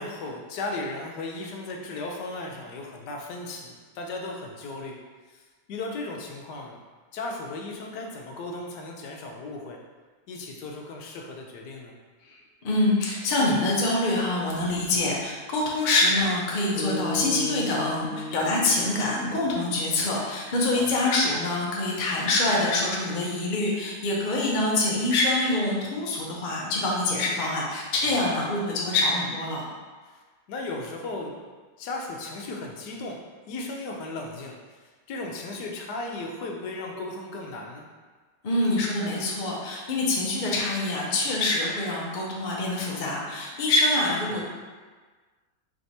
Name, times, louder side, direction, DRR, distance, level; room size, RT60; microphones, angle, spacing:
voice 1, 0.0-5.0 5.3-5.4 5.7-6.8 7.1-9.8 10.3-11.9 20.7-21.0 28.0-28.3 30.1-30.2 30.5-31.3 31.8-33.2 33.5-34.6 35.1-37.9 44.3-44.4, left 2 dB, 75° left, 1 dB, 1.2 m, -36 dB
voice 2, 12.6-29.7 38.4-44.5, left 2 dB, 60° left, -3 dB, 0.5 m, -25 dB
sound 1, 16.7-21.0, left 2 dB, 25° left, 1.2 m, -36 dB
4.6 x 3.3 x 2.7 m, 1.4 s
omnidirectional pair, 1.9 m